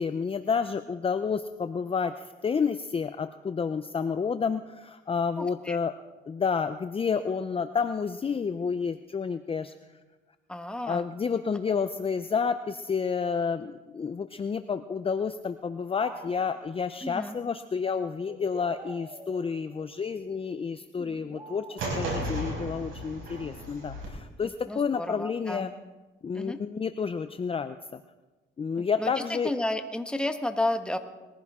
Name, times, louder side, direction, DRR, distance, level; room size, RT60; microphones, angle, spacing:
voice 1, 0.0-5.9 6.3-9.7 10.9-25.7 26.2-28.0 28.6-29.5, left 6 dB, 30° left, 10 dB, 0.6 m, -30 dB
voice 2, 5.4-5.8 10.5-11.0 17.0-17.3 24.4-25.7 26.3-26.6 28.8-29.1 29.4-31.0, left 1 dB, 5° left, 7 dB, 1.3 m, -32 dB
sound 1, 16.0-16.8 18.3-20.2 21.0-22.3, right 1 dB, 20° right, 3.7 m, -46 dB
sound 2, 21.8-24.1, right 1 dB, 80° right, 5.5 m, -34 dB
21.0 x 15.0 x 3.7 m, 1.2 s
cardioid pair, 90°, 20 cm